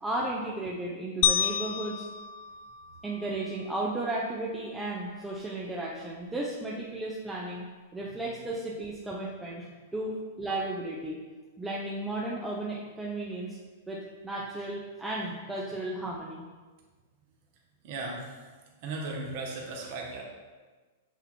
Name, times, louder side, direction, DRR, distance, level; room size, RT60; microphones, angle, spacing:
voice 1, 0.0-2.0 3.0-11.2 11.6-13.6 13.9-16.4, right 2 dB, 10° right, -4 dB, 0.7 m, -34 dB
sound 1, 1.2-3.6, left 9 dB, 50° left, 0.4 m, -30 dB
voice 2, 17.8-18.4 18.8-20.2, right 2 dB, 55° right, -1 dB, 1.3 m, -36 dB
8.1 x 2.9 x 4.3 m, 1.3 s
hypercardioid pair, 130°, 0 cm